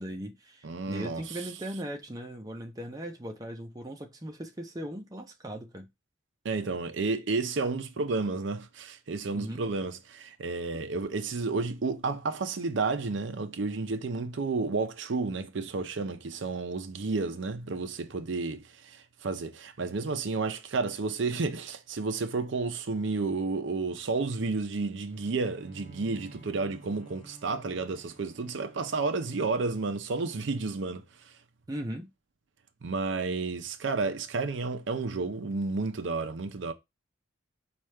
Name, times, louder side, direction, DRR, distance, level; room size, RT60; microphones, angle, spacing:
voice 1, 0.0-5.9 9.3-9.6 31.7-32.1, right 1 dB, 20° right, 0.6 m, -38 dB
voice 2, 0.6-1.2 6.4-31.0 32.8-36.7, right 3 dB, 70° right, 0.5 m, -31 dB
Bowed string instrument, 25.0-30.5, right 2 dB, 35° left, 2.7 m, -53 dB
4.9 x 2.4 x 4.3 m
head